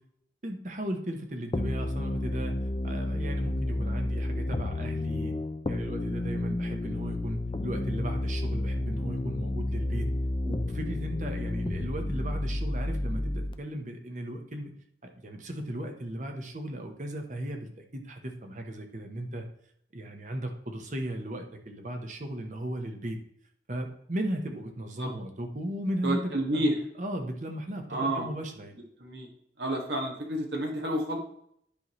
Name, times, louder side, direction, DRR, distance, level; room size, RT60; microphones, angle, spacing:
voice 1, 0.4-2.5 2.8-5.3 5.7-10.1 10.4-14.7 15.0-19.5 19.9-23.2 23.7-26.2 26.5-26.7 27.0-28.8, right 1 dB, 45° right, 4 dB, 1.1 m, -36 dB
sound 1, 1.5-13.5, left 1 dB, 30° left, 0.5 m, -31 dB
voice 2, 26.0-26.7 27.9-28.3 29.0-29.3 29.6-31.2, right 1 dB, 70° right, 1 dB, 1.8 m, -29 dB
10.0 x 5.6 x 3.2 m, 0.69 s
head